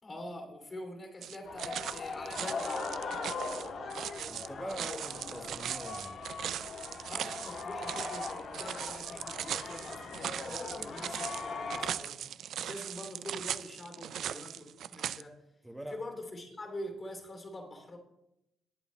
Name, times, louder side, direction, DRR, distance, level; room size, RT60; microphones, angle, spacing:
voice 1, 0.0-2.8 7.0-12.2 12.6-15.4 15.9-18.0, left 1 dB, 30° left, 2.7 m, -45 dB
Footsteps Walking On Gravel Stones Very Slow Pace, 1.2-15.2, right 10 dB, 70° right, 0.3 m, -39 dB
sound 1, 1.4-11.9, left 4 dB, 65° left, 1.9 m, -40 dB
voice 2, 4.3-6.2 15.6-16.0, right 1 dB, 10° right, 1.2 m, -44 dB
19.5 x 7.9 x 3.1 m
cardioid pair, 90°, 0 cm